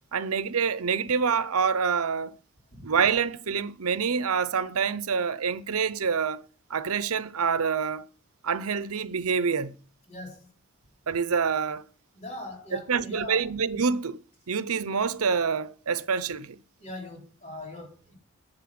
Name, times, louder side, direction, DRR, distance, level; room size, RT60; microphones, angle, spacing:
voice 1, 0.1-2.3 2.8-6.4 6.7-8.1 8.4-9.8 11.1-11.8 12.7-14.2 14.5-16.6, right 6 dB, 85° right, 0.7 m, -26 dB
voice 2, 10.1-10.5 12.1-13.5 16.8-18.1, left 1 dB, 30° left, 4.1 m, -41 dB
11.0 x 8.1 x 6.0 m
head